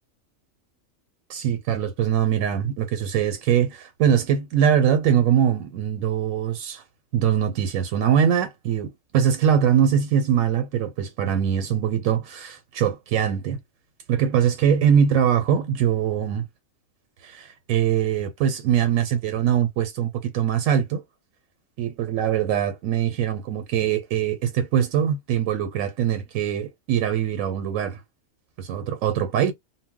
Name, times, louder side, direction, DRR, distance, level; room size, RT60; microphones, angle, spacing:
voice 1, 1.3-6.8 7.1-13.6 14.1-16.4 17.2-21.0 21.8-28.0 28.6-29.5, right 9 dB, 85° right, 1.0 m, -22 dB
2.2 x 2.1 x 3.6 m
omnidirectional pair, 1.3 m